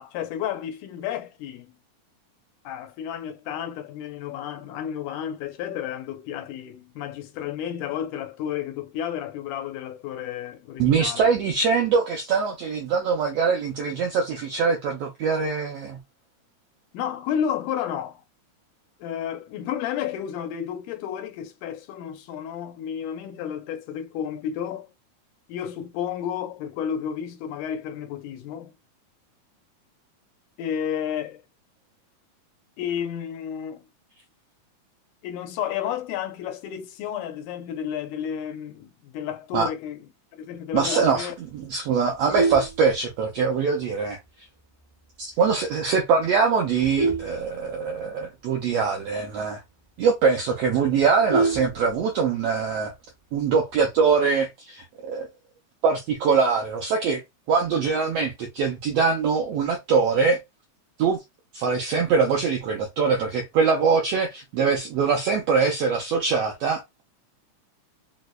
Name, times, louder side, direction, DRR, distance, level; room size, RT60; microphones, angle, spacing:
voice 1, 0.0-1.7 2.7-11.3 16.9-18.2 19.0-24.9 25.5-28.7 30.6-31.4 32.8-33.8 35.2-40.0 40.4-41.4, left 9 dB, 85° left, 2.1 m, -31 dB
voice 2, 10.8-16.0 39.5-39.7 40.7-44.2 45.2-49.6 50.0-52.9 53.3-55.3 55.8-57.2 57.5-60.4 61.0-61.2 61.5-67.0, right 5 dB, 85° right, 1.4 m, -23 dB
Vehicle horn car horn honking, 42.0-43.5 44.0-44.2 44.6-44.7 45.1-45.2 45.5-45.8 46.4-48.2 48.6-48.7 49.0-49.1 49.5-49.6 49.9-50.0 50.3-52.3 53.5-54.0, right 3 dB, 60° right, 0.6 m, -28 dB
4.9 x 2.1 x 2.2 m
omnidirectional pair, 3.5 m